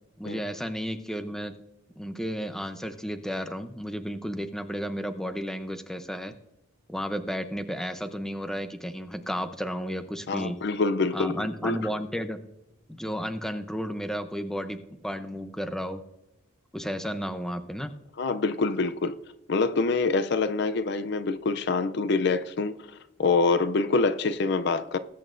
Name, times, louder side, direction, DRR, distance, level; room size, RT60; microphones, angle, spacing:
voice 1, 0.2-1.5 2.0-6.4 6.9-10.6 11.1-12.4 12.9-16.0 16.7-17.9, equal, ahead, 0.6 m, -33 dB
voice 2, 10.3-11.8 18.2-19.1 19.5-22.7 23.2-25.0, left 3 dB, 55° left, 0.5 m, -25 dB
20.0 x 8.8 x 2.6 m
head